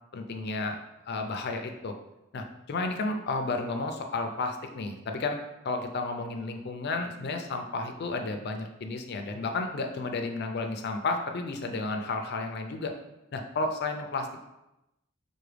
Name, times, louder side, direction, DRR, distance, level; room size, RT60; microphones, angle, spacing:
voice 1, 0.1-0.8 1.1-1.9 2.3-5.4 5.6-12.9 13.3-14.4, left 3 dB, 55° left, 5 dB, 0.5 m, -32 dB
5.7 x 2.2 x 3.3 m, 0.93 s
head